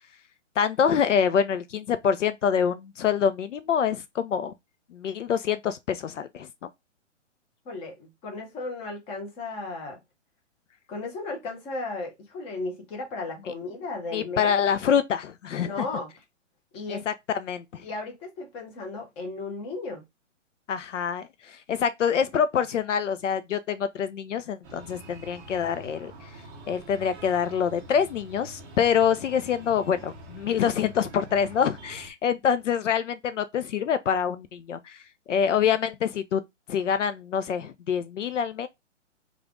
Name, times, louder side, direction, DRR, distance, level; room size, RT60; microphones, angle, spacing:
voice 1, 0.6-4.5 4.9-6.7 13.5-13.6 14.1-15.9 16.9-17.8 20.7-26.1 26.7-35.0 35.3-36.4 36.7-38.7, left 7 dB, 70° left, 0.6 m, -26 dB
voice 2, 7.6-10.0 10.9-14.5 15.6-16.1 16.7-17.0 17.8-20.0, left 3 dB, 15° left, 0.8 m, -35 dB
Breathing, 24.6-32.1, right 1 dB, 15° right, 0.6 m, -46 dB
3.3 x 2.4 x 3.6 m
hypercardioid pair, 140°, 38 cm